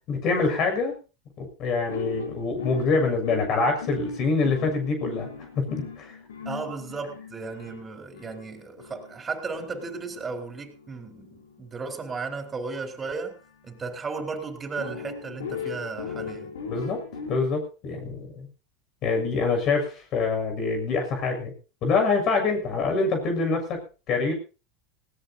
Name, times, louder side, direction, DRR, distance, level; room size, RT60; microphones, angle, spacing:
voice 1, 0.1-0.9 1.4-5.3 5.6-6.1 16.7-18.5 19.0-21.5 21.8-24.3, left 4 dB, 45° left, 6.7 m, -25 dB
sound 1, 1.9-14.0 14.8-17.4, left 5 dB, 85° left, 3.9 m, -39 dB
voice 2, 6.4-13.4 13.6-16.5, right 4 dB, 20° right, 4.6 m, -35 dB
19.0 x 18.0 x 2.9 m
hypercardioid pair, 100°, 0 cm